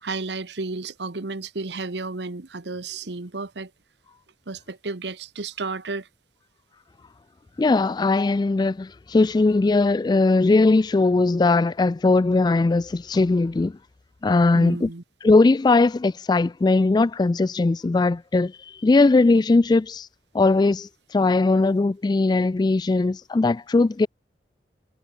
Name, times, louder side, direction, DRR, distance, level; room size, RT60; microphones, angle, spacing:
voice 1, 0.0-3.7 4.5-6.1 14.5-15.0, right 3 dB, 75° right, 1.2 m, -32 dB
voice 2, 7.6-13.8 14.2-14.9 15.2-18.5 18.8-20.1 20.3-24.1, left 3 dB, 25° left, 0.3 m, -19 dB
head